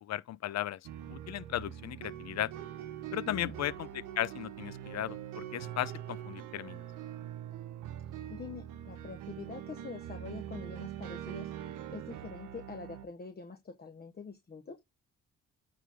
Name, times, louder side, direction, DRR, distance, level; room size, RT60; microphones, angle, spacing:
voice 1, 0.0-0.8 1.1-2.5 3.1-6.8, left 12 dB, 60° left, 0.6 m, -36 dB
sound 1, 0.8-13.0, right 11 dB, 85° right, 1.1 m, -43 dB
voice 2, 3.3-3.6 8.3-11.5 11.9-14.8, left 5 dB, 30° left, 1.2 m, -45 dB
9.2 x 3.9 x 3.5 m
cardioid pair, 90°, 30 cm